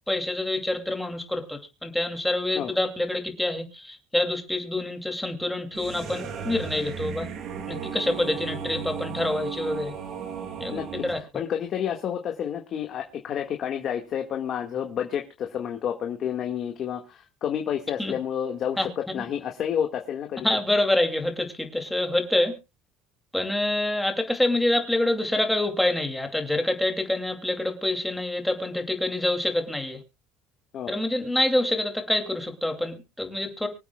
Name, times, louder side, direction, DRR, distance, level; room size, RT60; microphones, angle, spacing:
voice 1, 0.1-7.3 7.7-9.9 10.6-10.7 11.0-11.2 18.0-18.1 18.8-18.9 19.1-19.2 20.4-22.6 23.3-30.0 30.9-33.7, left 1 dB, 5° left, 4 dB, 2.5 m, -26 dB
sound 1, 5.7-11.2, right 7 dB, 55° right, 2.6 m, -35 dB
voice 2, 10.7-11.0 11.3-20.5 30.7-30.9, left 9 dB, 45° left, 3 dB, 1.7 m, -30 dB
24.5 x 8.3 x 2.3 m, 0.27 s
cardioid pair, 135°, 0 cm